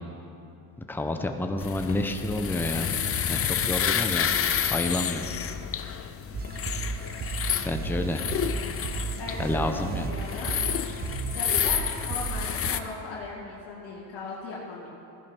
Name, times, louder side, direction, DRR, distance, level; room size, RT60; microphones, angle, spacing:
voice 1, 0.9-2.9 3.3-4.3 4.7-5.3 7.6-8.3 9.4-10.1, left 1 dB, 5° left, 5 dB, 0.8 m, -29 dB
sound 1, 1.6-12.8, left 8 dB, 35° left, 0.7 m, -29 dB
sound 2, 6.3-12.8, right 6 dB, 25° right, 0.4 m, -35 dB
voice 2, 9.2-10.6 11.3-14.9, left 3 dB, 70° left, -7 dB, 2.4 m, -38 dB
15.0 x 10.5 x 4.5 m, 2.7 s
supercardioid pair, 95°, 41 cm